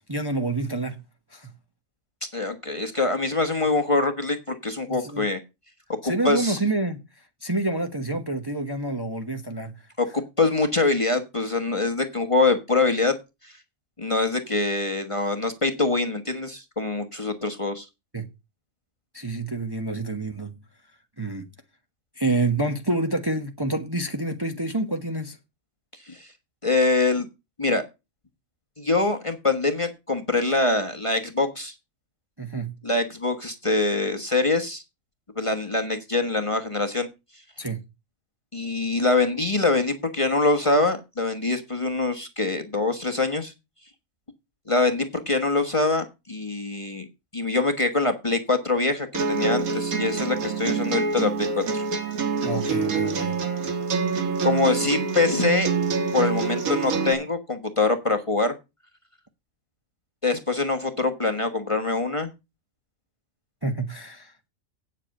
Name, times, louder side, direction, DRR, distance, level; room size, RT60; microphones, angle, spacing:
voice 1, 0.1-1.0 1.3-1.5 4.9-5.3 6.0-7.0 7.4-9.7 18.1-18.3 19.1-20.5 21.2-21.5 22.2-25.4 32.4-32.7 37.6-37.8 52.4-53.3 63.6-64.3, right 2 dB, 20° right, 1.1 m, -28 dB
voice 2, 2.3-5.4 6.0-6.6 10.0-13.2 13.4-13.5 14.0-17.9 26.1-26.3 26.6-27.3 27.6-27.8 28.8-31.7 32.8-34.8 35.3-37.1 38.5-43.5 44.7-47.1 47.3-51.8 54.4-55.7 56.1-58.5 60.2-62.3, left 3 dB, 25° left, 1.3 m, -24 dB
sound 1, 49.1-57.1, right 5 dB, 90° right, 1.9 m, -26 dB
9.0 x 7.6 x 6.5 m
omnidirectional pair, 1.4 m